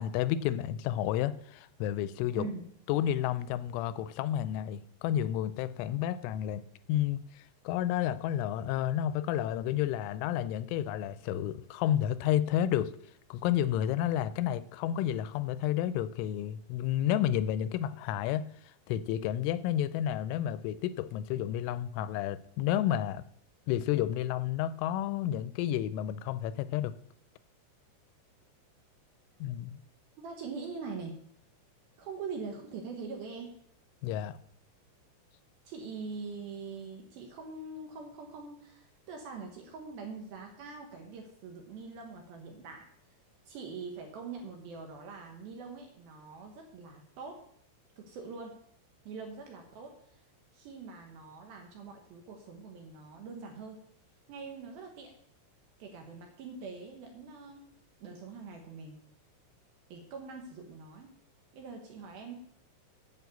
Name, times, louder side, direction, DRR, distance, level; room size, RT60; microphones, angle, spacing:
voice 1, 0.0-2.5 2.9-6.6 6.9-12.9 13.3-18.4 18.9-23.2 23.7-26.9 29.4-29.8 34.0-34.4, left 11 dB, 85° left, 14 dB, 2.9 m, -31 dB
voice 2, 30.2-31.2 32.0-33.6 35.7-42.9 43.5-47.5 48.0-48.6 49.1-50.3 50.5-53.8 54.3-55.1 55.8-57.7 58.0-59.0 59.9-61.2 61.5-62.3, right 4 dB, 70° right, 3 dB, 2.3 m, -43 dB
9.1 x 6.2 x 8.1 m, 0.66 s
omnidirectional pair, 5.7 m